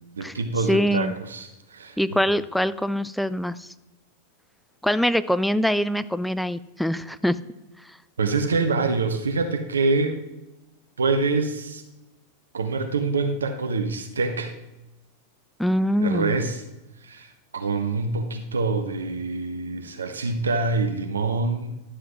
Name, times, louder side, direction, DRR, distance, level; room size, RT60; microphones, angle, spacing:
voice 1, 0.2-2.0 8.2-10.2 11.0-11.8 12.5-14.5 16.0-16.6 17.0-21.7, right 3 dB, 70° right, 6 dB, 0.7 m, -25 dB
voice 2, 0.7-1.1 2.0-3.7 4.8-7.4 15.6-16.4, equal, ahead, 14 dB, 0.3 m, -23 dB
11.0 x 7.8 x 3.1 m, 0.97 s
figure-of-eight pair, 90°, 0 cm